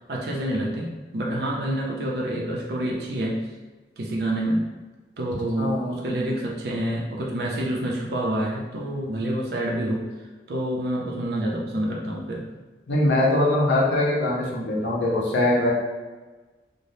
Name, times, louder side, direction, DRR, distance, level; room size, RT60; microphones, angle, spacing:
voice 1, 0.1-3.4 4.0-4.7 5.2-10.1 10.5-12.4, right 1 dB, 65° right, -2 dB, 0.5 m, -27 dB
voice 2, 5.6-6.1 12.9-15.7, left 1 dB, 85° left, -4 dB, 0.6 m, -22 dB
3.3 x 2.1 x 2.6 m, 1.3 s
head